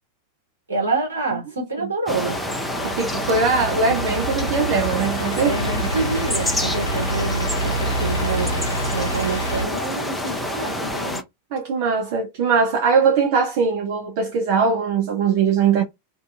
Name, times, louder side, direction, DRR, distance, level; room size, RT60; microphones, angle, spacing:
voice 1, 0.7-2.4 5.4-8.6 8.9-11.2, right 3 dB, 70° right, 1.4 m, -27 dB
sound 1, 2.1-11.2, left 1 dB, 5° left, 0.5 m, -27 dB
Idling / Accelerating revving vroom, 2.5-9.6, right 1 dB, 80° left, 0.5 m, -28 dB
voice 2, 3.0-5.6 11.5-15.8, right 5 dB, 50° right, 0.5 m, -20 dB
2.6 x 2.3 x 2.4 m
figure-of-eight pair, 90°, 0 cm